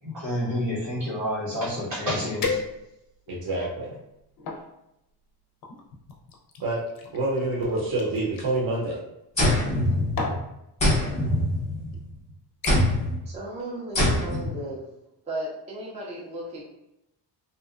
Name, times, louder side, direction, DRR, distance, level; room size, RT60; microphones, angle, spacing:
voice 1, 0.0-2.6 3.3-3.5 4.4-4.5, left 1 dB, 85° right, -6 dB, 1.4 m, -29 dB
sound 1, 1.8-1.9 2.4-3.2 3.8-4.7 5.6-8.5 9.6-9.8 10.2-10.5 11.4-11.5 11.9-12.2 12.6-13.0 13.4-13.7 14.1-14.2, left 4 dB, 50° left, 0.5 m, -35 dB
voice 2, 3.3-3.9 6.6-6.8 7.1-9.0, right 2 dB, 55° right, -4 dB, 0.7 m, -27 dB
sound 2, 9.4-10.4 10.8-12.1 12.7-13.2 14.0-14.6, left 1 dB, 15° left, 0.7 m, -23 dB
voice 3, 13.3-14.8 15.3-16.6, right 1 dB, 15° right, -4 dB, 0.4 m, -35 dB
2.6 x 2.1 x 2.4 m, 0.85 s
wide cardioid pair, 170°, 43 cm